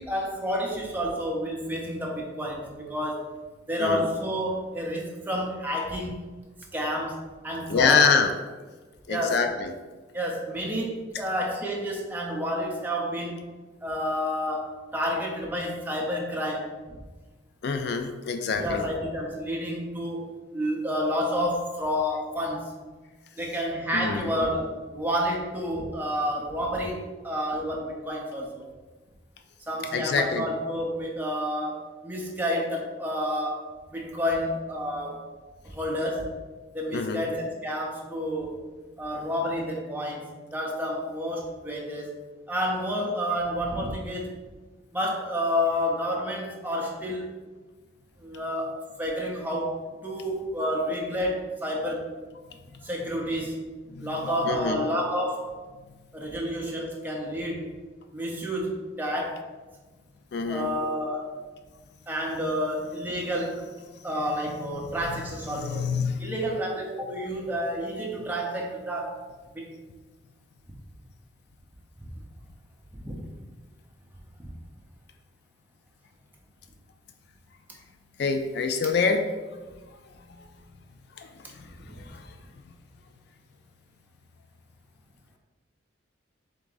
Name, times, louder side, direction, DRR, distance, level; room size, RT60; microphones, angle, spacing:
voice 1, 0.0-3.3 3.7-6.3 6.7-8.1 9.1-9.4 10.1-13.5 13.8-17.0 18.6-22.7 23.4-28.7 29.7-35.2 35.6-36.3 36.7-38.6 39.0-44.4 44.9-47.3 48.2-52.1 52.8-53.6 54.0-55.5 56.1-57.7 58.1-59.4 60.5-61.3 62.1-63.7 64.0-65.9 66.2-69.2 69.5-69.7 72.0-72.1 72.9-73.2 74.4-74.5 81.8-81.9, equal, 10° right, -2 dB, 0.6 m, -30 dB
voice 2, 7.7-8.3 9.1-9.7 17.6-18.8 23.9-24.3 29.9-30.4 36.9-37.2 53.9-54.1 54.4-54.8 60.3-60.7 65.5-66.2 78.2-79.3 79.7-79.8 80.4-80.5 81.2-82.3, left 5 dB, 55° left, 6 dB, 0.3 m, -26 dB
3.7 x 3.5 x 3.8 m, 1.3 s
head